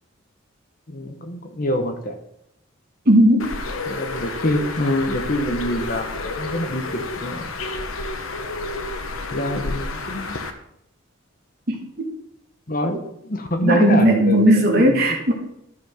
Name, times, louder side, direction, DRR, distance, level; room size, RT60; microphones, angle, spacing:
voice 1, 0.9-2.2 3.8-7.5 9.3-10.3 12.7-15.2, left 1 dB, 45° left, 6 dB, 1.1 m, -25 dB
voice 2, 3.1-3.5 11.7-12.1 13.6-15.3, right 1 dB, 50° right, 1 dB, 2.2 m, -16 dB
Bird, 3.4-10.5, left 2 dB, 85° left, 1.1 m, -30 dB
12.5 x 5.8 x 5.7 m, 0.77 s
head